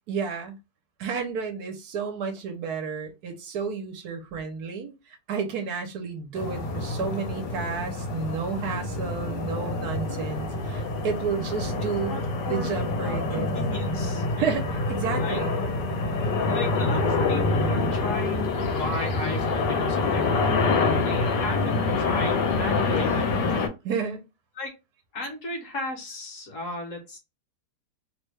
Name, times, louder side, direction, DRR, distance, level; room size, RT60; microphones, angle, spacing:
voice 1, 0.1-0.5 1.0-12.1 12.5-13.5 14.4-15.6 23.8-24.2, right 5 dB, 70° right, 1.1 m, -31 dB
sound 1, 6.4-23.7, left 3 dB, 80° left, 1.4 m, -26 dB
voice 2, 13.0-14.2 15.2-15.4 16.4-23.3 24.6-24.7 25.1-27.2, left 2 dB, 55° left, 1.2 m, -35 dB
3.1 x 2.2 x 3.1 m
omnidirectional pair, 1.8 m